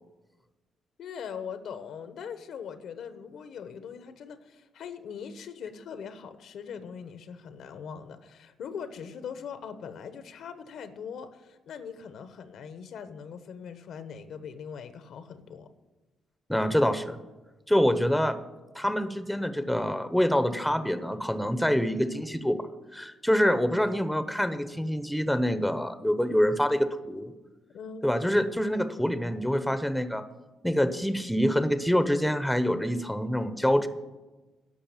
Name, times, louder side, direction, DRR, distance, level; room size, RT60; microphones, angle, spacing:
voice 1, 1.0-15.7 27.7-28.1, left 7 dB, 70° left, 11 dB, 1.0 m, -41 dB
voice 2, 16.5-17.2 17.7-18.4 18.7-22.6 22.9-27.3 28.0-30.2 30.6-33.9, equal, ahead, 10 dB, 0.8 m, -26 dB
11.5 x 6.5 x 8.9 m, 1.2 s
cardioid pair, 90°, 0 cm